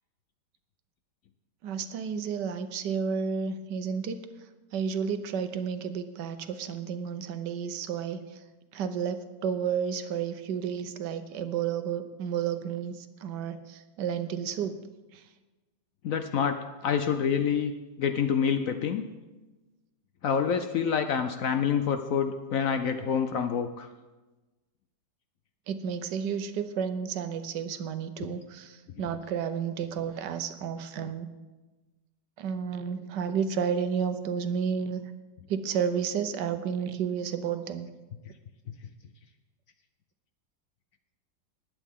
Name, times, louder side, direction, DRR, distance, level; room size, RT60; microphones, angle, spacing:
voice 1, 1.6-4.2 4.7-8.2 8.7-14.8 15.1-15.2 25.7-31.3 32.4-35.0 35.5-37.9, right 7 dB, 75° right, 10 dB, 1.4 m, -31 dB
voice 2, 16.0-19.1 20.2-23.9, left 7 dB, 65° left, 8 dB, 0.8 m, -27 dB
19.5 x 8.8 x 3.6 m, 1.2 s
omnidirectional pair, 1.9 m